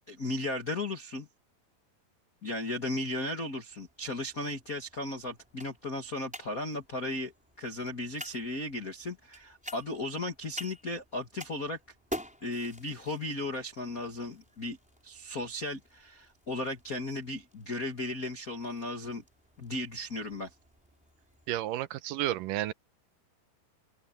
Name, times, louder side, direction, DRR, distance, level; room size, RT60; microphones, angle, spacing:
voice 1, 0.1-1.3 2.4-7.3 7.6-11.8 12.4-14.8 15.0-19.2 19.6-20.5, left 2 dB, 50° left, 1.0 m, -35 dB
sound 1, 3.7-21.6, equal, ahead, 4.9 m, -49 dB
voice 2, 21.5-22.7, right 14 dB, 80° right, 1.9 m, -31 dB
open air
omnidirectional pair, 4.8 m